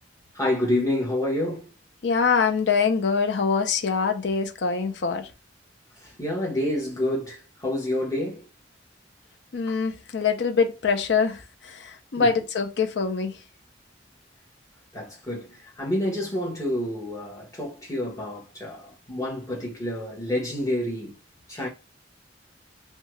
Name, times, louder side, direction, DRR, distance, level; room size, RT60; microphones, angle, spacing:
voice 1, 0.3-1.7 6.0-8.4 9.7-9.8 12.2-12.3 14.9-21.1 21.5-21.7, left 1 dB, 20° left, 1.1 m, -28 dB
voice 2, 2.0-5.3 9.5-13.4, left 5 dB, 70° left, 0.5 m, -24 dB
2.7 x 2.2 x 3.0 m
head